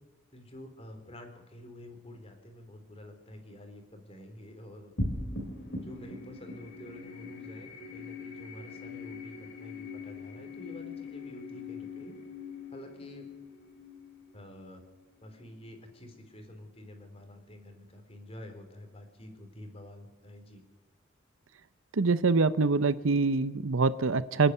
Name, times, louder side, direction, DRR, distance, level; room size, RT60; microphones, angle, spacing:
voice 1, 0.3-4.9 5.8-12.2 12.7-13.3 14.3-14.8 15.2-20.6, left 1 dB, 30° left, 5 dB, 3.8 m, -48 dB
sound 1, 5.0-15.6, left 2 dB, 60° left, 3.6 m, -41 dB
voice 2, 21.9-24.5, right 4 dB, 80° right, 15 dB, 0.8 m, -25 dB
26.5 x 10.0 x 9.6 m, 1.1 s
head